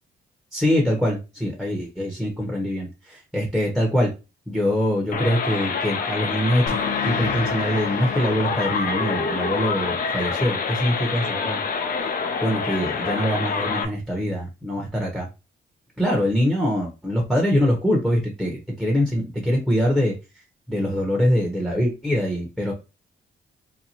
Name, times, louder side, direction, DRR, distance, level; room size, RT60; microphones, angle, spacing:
voice 1, 0.5-4.1 4.5-6.8 7.0-11.6 12.4-15.3 16.0-20.1 20.7-22.7, equal, ahead, -2 dB, 1.0 m, -23 dB
sound 1, 5.1-13.9, left 5 dB, 45° left, 0.6 m, -27 dB
sound 2, 6.7-11.8, left 6 dB, 70° left, 0.9 m, -34 dB
2.9 x 2.1 x 4.1 m, 0.28 s
cardioid pair, 90°, 20 cm